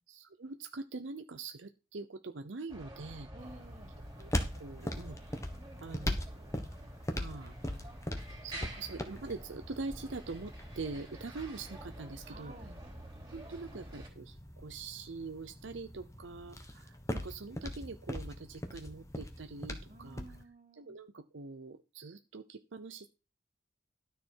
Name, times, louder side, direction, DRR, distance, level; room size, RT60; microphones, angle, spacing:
voice 1, 0.1-3.3 4.2-5.2 5.8-6.6 7.1-7.8 8.4-12.5 13.3-20.2 20.8-23.2, right 3 dB, 75° right, 9 dB, 0.7 m, -44 dB
sound 1, 2.7-14.1, right 1 dB, 20° right, 3.1 m, -48 dB
voice 2, 3.3-3.9 12.2-12.8 19.9-21.0, right 2 dB, 40° right, 7 dB, 1.5 m, -52 dB
sound 2, 3.4-20.4, left 1 dB, 15° left, 1.3 m, -41 dB
12.5 x 6.8 x 4.5 m, 0.29 s
head